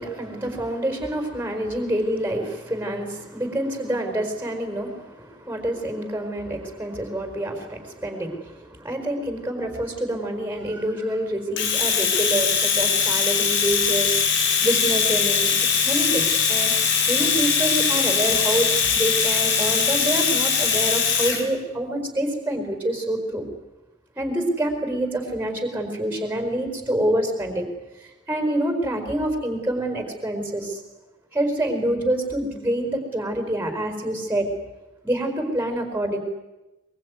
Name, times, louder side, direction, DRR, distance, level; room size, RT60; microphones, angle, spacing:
voice 1, 0.0-14.2 14.6-15.5 15.8-16.7 17.1-23.4 24.2-27.7 28.3-30.8 31.3-34.5 35.0-36.2, right 1 dB, 10° right, 6 dB, 4.6 m, -27 dB
Domestic sounds home sounds, 11.6-21.4, left 6 dB, 65° left, 3.5 m, -21 dB
23.0 x 23.0 x 9.5 m, 1.0 s
head